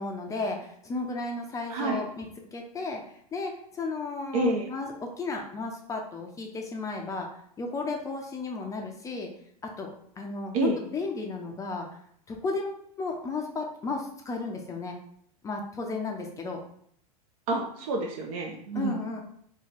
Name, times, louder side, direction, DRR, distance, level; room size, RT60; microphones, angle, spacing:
voice 1, 0.0-7.3 7.6-9.3 9.6-9.9 10.2-11.9 12.3-14.9 15.4-16.6 18.7-19.2, left 3 dB, 15° left, 2 dB, 0.4 m, -34 dB
voice 2, 1.7-2.0 4.3-4.7 10.5-10.8 17.5-19.0, right 2 dB, 65° right, 0 dB, 0.6 m, -28 dB
2.9 x 2.2 x 3.9 m, 0.66 s
hypercardioid pair, 115°, 20 cm